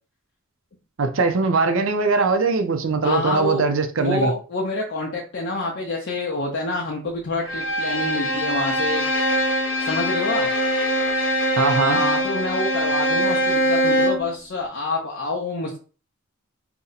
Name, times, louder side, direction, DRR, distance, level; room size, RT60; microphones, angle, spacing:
voice 1, 1.0-4.3 11.6-12.0, right 4 dB, 65° right, 0.5 m, -21 dB
voice 2, 3.0-3.6 4.0-9.0 9.8-10.5 11.8-15.8, left 2 dB, 55° left, 0.6 m, -27 dB
Bowed string instrument, 7.5-14.3, equal, 70° left, 1.2 m, -22 dB
2.8 x 2.1 x 3.9 m
head